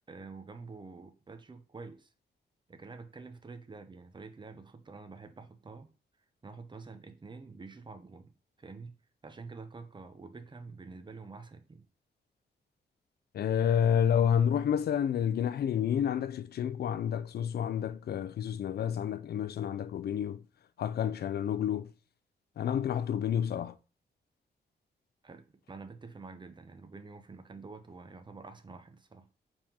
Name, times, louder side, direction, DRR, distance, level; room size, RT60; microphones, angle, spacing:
voice 1, 0.1-2.1 2.7-5.9 6.4-8.3 8.6-11.9 25.2-29.3, right 4 dB, 25° right, 0.6 m, -48 dB
voice 2, 13.3-20.4 20.8-21.9 22.6-23.7, left 9 dB, 60° left, 0.4 m, -29 dB
4.9 x 3.6 x 2.8 m
cardioid pair, 100°, 18 cm